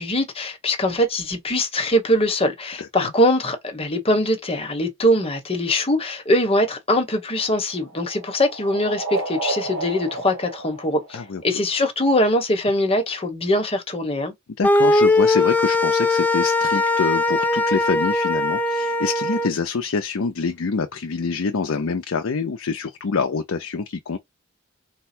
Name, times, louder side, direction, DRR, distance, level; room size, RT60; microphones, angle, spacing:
voice 1, 0.0-14.3, left 1 dB, 30° left, 1.0 m, -22 dB
voice 2, 2.8-3.1 11.1-11.4 14.6-24.2, left 5 dB, 70° left, 0.5 m, -26 dB
sound 1, 7.1-11.7, right 2 dB, 80° right, 1.5 m, -32 dB
sound 2, 14.6-19.5, left 2 dB, 10° left, 0.4 m, -20 dB
4.1 x 2.2 x 4.3 m
head